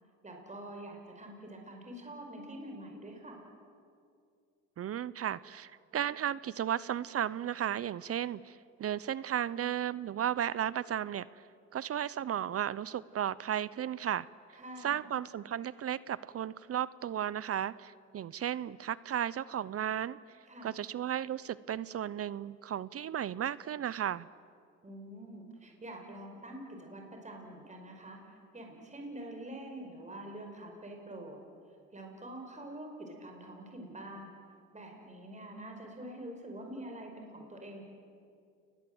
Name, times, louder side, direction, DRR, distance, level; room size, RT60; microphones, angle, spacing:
voice 1, 0.2-3.4 14.5-15.0 20.5-20.7 24.8-31.4 31.9-34.4 34.7-37.8, right 1 dB, 25° right, 2 dB, 5.1 m, -46 dB
voice 2, 4.8-11.3 11.7-14.3 14.8-20.2 20.6-24.3, right 10 dB, 50° right, 19 dB, 0.6 m, -34 dB
29.0 x 21.0 x 7.9 m, 2.3 s
cardioid pair, 90°, 30 cm